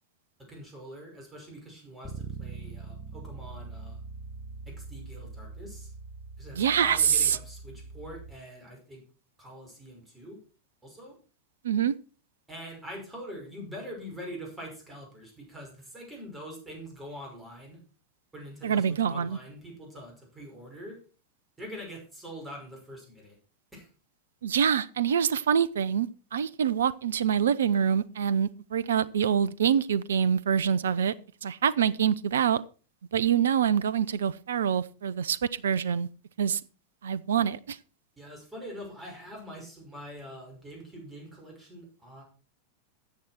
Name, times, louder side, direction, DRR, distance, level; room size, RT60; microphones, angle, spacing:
voice 1, 0.5-4.0 4.7-5.9 6.4-9.0 9.4-10.4 10.8-11.1 12.5-17.8 18.3-21.0 21.6-23.4 23.7-23.9 38.2-42.2, equal, 10° right, 5.5 m, -44 dB
Bass guitar, 2.0-8.3, right 4 dB, 5° left, 3.2 m, -42 dB
voice 2, 6.5-7.4 11.6-11.9 18.6-19.4 24.4-31.1 31.4-32.6 33.1-36.1 36.4-36.6 37.0-37.8, right 8 dB, 65° right, 0.5 m, -25 dB
13.5 x 8.0 x 4.4 m
figure-of-eight pair, 90°, 0 cm